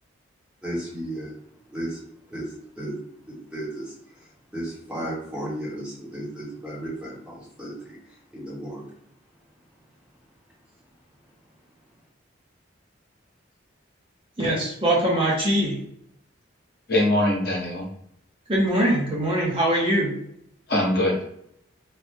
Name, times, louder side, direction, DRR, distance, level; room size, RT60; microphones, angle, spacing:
voice 1, 0.6-1.3 1.7-3.0 3.3-8.9, right 1 dB, 5° right, -7 dB, 0.9 m, -35 dB
voice 2, 14.4-15.8 18.5-20.1, right 1 dB, 25° right, -3 dB, 0.6 m, -22 dB
voice 3, 16.9-17.9 20.7-21.2, left 1 dB, 50° left, -3 dB, 1.0 m, -22 dB
3.1 x 2.0 x 3.3 m, 0.71 s
head